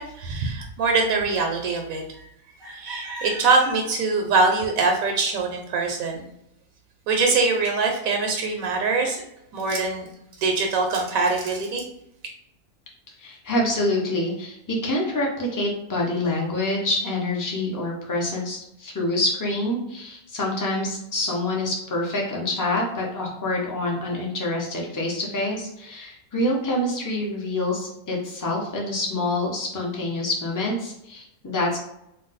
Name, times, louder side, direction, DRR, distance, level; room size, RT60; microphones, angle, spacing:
voice 1, 0.0-2.3 2.6-6.3 7.1-9.2 9.5-10.1 10.4-11.8, right 3 dB, 80° right, 2 dB, 1.0 m, -23 dB
voice 2, 13.2-31.8, left 1 dB, 30° left, -2 dB, 0.4 m, -26 dB
2.5 x 2.2 x 3.9 m, 0.80 s
omnidirectional pair, 1.4 m